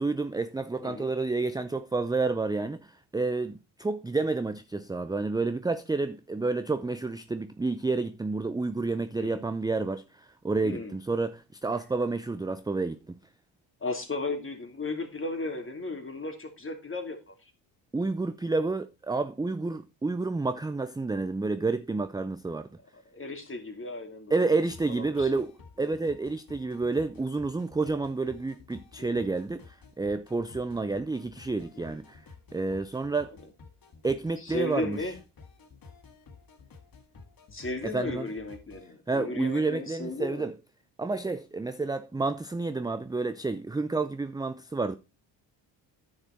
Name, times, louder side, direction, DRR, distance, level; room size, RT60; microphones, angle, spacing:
voice 1, 0.0-13.2 17.9-22.7 24.3-25.5 25.8-32.2 32.5-33.3 34.0-35.1 37.9-38.3 39.1-40.5 41.0-44.9, right 3 dB, 10° right, 0.5 m, -30 dB
voice 2, 10.6-11.0 13.8-17.5 22.9-24.6 24.9-25.4 25.8-26.0 29.0-29.2 31.7-32.0 33.2-33.3 34.4-35.1 37.5-40.5, left 2 dB, 25° left, 2.7 m, -35 dB
sound 1, 24.7-38.9, left 4 dB, 50° left, 1.8 m, -52 dB
9.9 x 6.6 x 4.3 m
supercardioid pair, 70°, 45 cm